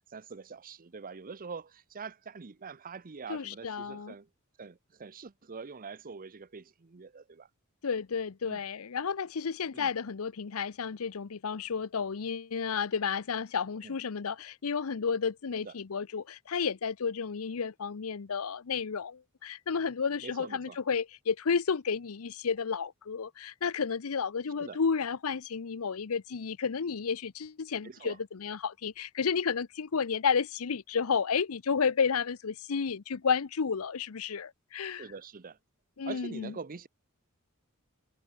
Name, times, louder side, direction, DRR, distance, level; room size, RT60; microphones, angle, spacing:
voice 1, 0.1-4.3 4.6-7.5 8.4-8.6 9.7-9.9 13.8-14.0 15.6-15.7 20.2-20.8 24.6-24.8 27.8-28.2 34.9-35.6 36.1-36.9, right 5 dB, 40° right, 0.7 m, -44 dB
voice 2, 3.3-4.1 7.8-35.0 36.0-36.5, left 6 dB, 75° left, 0.7 m, -32 dB
head